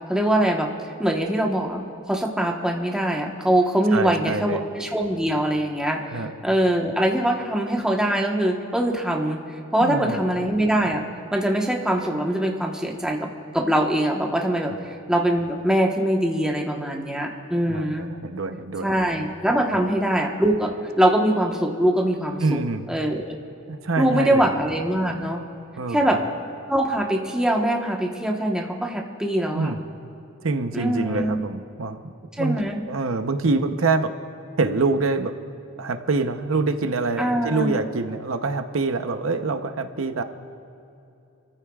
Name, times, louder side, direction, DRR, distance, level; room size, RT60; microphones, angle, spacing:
voice 1, 0.1-0.7 1.0-6.0 6.4-9.4 9.7-11.0 11.3-13.3 13.5-14.7 15.1-18.1 18.8-22.6 22.9-23.4 24.0-25.4 25.9-26.2 26.7-29.7 30.7-31.4 32.4-32.8 37.2-37.7, right 1 dB, 5° right, 0 dB, 1.2 m, -23 dB
voice 2, 3.9-4.6 6.1-6.3 9.8-10.2 17.7-18.9 19.7-19.8 22.4-22.9 23.7-24.5 25.8-26.1 29.5-29.8 30.4-32.0 32.4-32.6 32.9-34.1 34.6-35.3 35.8-40.2, right 3 dB, 80° right, 7 dB, 0.8 m, -25 dB
28.5 x 14.5 x 2.4 m, 2.7 s
head